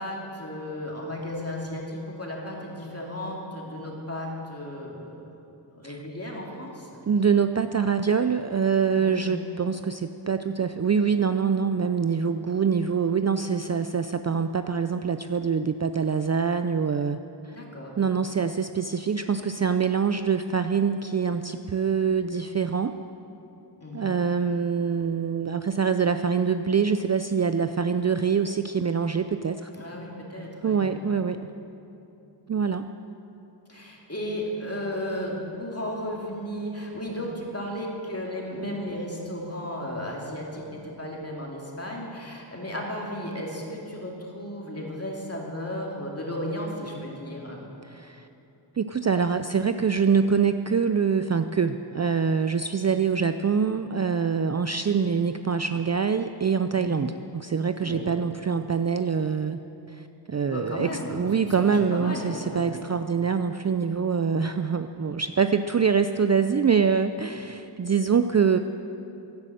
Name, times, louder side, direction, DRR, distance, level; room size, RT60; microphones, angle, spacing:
voice 1, 0.0-5.2 5.7-7.0 9.0-9.3 17.5-18.2 23.8-24.1 29.7-31.2 33.7-47.6 56.7-57.1 57.8-58.1 60.5-62.7, left 1 dB, 30° left, -2 dB, 2.6 m, -34 dB
voice 2, 7.1-17.2 18.0-22.9 23.9-29.7 30.6-31.4 32.5-32.9 47.8-48.2 48.8-59.6 59.9-68.6, right 6 dB, 35° right, 9 dB, 0.4 m, -25 dB
12.0 x 11.5 x 7.8 m, 2.8 s
wide cardioid pair, 80°, 46 cm